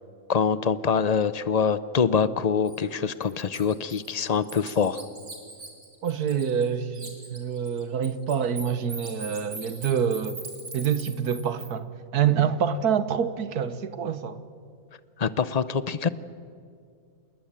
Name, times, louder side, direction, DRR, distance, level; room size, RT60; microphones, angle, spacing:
voice 1, 0.3-5.0 15.2-16.1, left 6 dB, 45° left, 0.5 m, -24 dB
Bird, 2.7-2.8 3.2-6.7 6.9-11.7, right 2 dB, 65° right, 4.6 m, -41 dB
voice 2, 6.0-10.4 10.7-14.4, right 8 dB, 80° right, 1.7 m, -26 dB
27.5 x 20.0 x 8.9 m
omnidirectional pair, 1.6 m